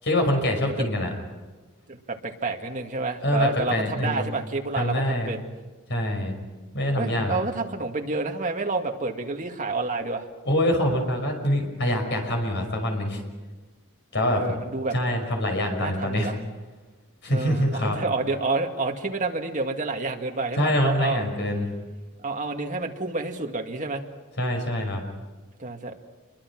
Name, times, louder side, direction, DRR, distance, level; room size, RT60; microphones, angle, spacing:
voice 1, 0.0-1.1 3.2-4.3 4.8-5.3 5.9-6.4 6.7-7.4 10.5-13.2 14.1-14.4 14.9-16.3 17.2-18.0 20.6-21.7 24.4-25.0, left 1 dB, 55° left, 4 dB, 5.6 m, -25 dB
voice 2, 1.9-5.4 7.0-10.3 14.2-15.0 15.8-16.4 17.3-21.2 22.2-24.0 25.6-26.0, right 3 dB, 35° right, 3 dB, 2.1 m, -29 dB
28.0 x 23.0 x 6.1 m, 1.3 s
head